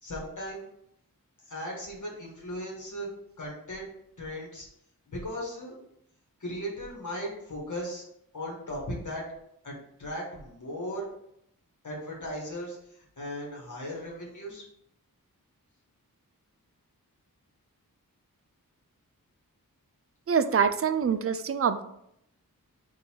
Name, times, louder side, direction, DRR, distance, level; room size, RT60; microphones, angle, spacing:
voice 1, 0.0-0.6 1.5-3.1 3.4-3.9 4.2-4.7 5.1-5.8 6.4-8.0 8.3-9.3 9.6-11.1 11.8-14.6, equal, 55° left, -3 dB, 1.5 m, -37 dB
voice 2, 20.3-21.8, right 7 dB, 40° right, 11 dB, 0.4 m, -25 dB
3.8 x 2.6 x 4.5 m, 0.75 s
wide cardioid pair, 65°, 35 cm